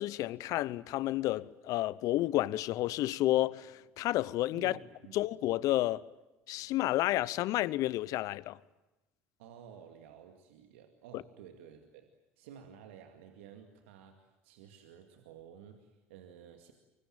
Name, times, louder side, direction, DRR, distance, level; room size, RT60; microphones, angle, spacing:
voice 1, 0.0-4.8 5.1-6.0 6.5-8.6, left 16 dB, 60° left, 0.8 m, -31 dB
voice 2, 4.5-5.2 9.4-12.1 12.4-16.7, right 8 dB, 75° right, 2.2 m, -53 dB
24.5 x 23.5 x 9.0 m
hypercardioid pair, 70°, 7 cm